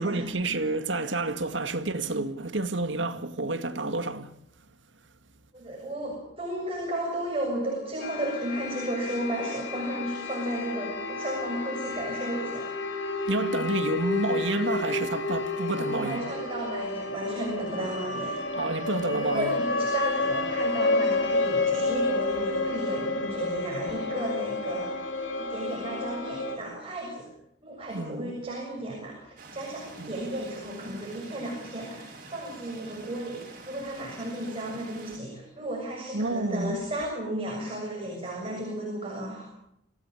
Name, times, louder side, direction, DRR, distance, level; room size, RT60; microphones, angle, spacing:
voice 1, 0.0-4.3 13.3-16.2 18.5-19.6 27.9-28.3 30.0-30.1 36.1-36.8, right 2 dB, 85° right, 2.0 m, -29 dB
voice 2, 5.5-12.7 15.8-18.4 19.2-25.0 25.4-27.3 27.6-39.5, right 1 dB, 30° right, 7.2 m, -34 dB
sound 1, 8.0-26.6, left 3 dB, 80° left, 4.1 m, -30 dB
sound 2, 29.4-35.2, right 2 dB, 50° right, 6.7 m, -47 dB
28.0 x 17.0 x 8.4 m
head